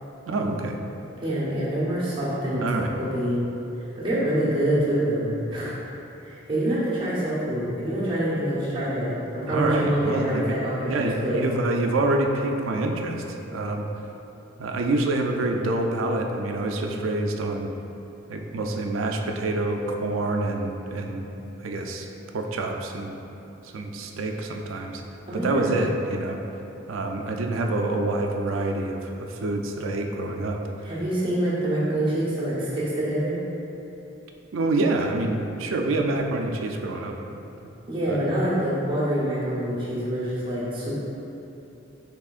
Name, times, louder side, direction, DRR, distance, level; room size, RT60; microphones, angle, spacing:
voice 1, 0.3-0.8 2.6-2.9 9.5-10.5 10.9-13.2 13.5-13.9 14.6-17.7 18.3-21.3 21.6-22.1 22.3-23.2 23.7-25.0 25.3-26.4 26.9-30.6 34.5-37.4 38.1-38.2, right 2 dB, 85° right, 3 dB, 0.4 m, -26 dB
voice 2, 1.2-3.5 4.0-5.7 6.2-11.4 25.3-25.8 30.8-33.4 37.9-40.9, right 1 dB, 25° right, -9 dB, 1.0 m, -26 dB
5.9 x 3.5 x 2.4 m, 3.0 s
head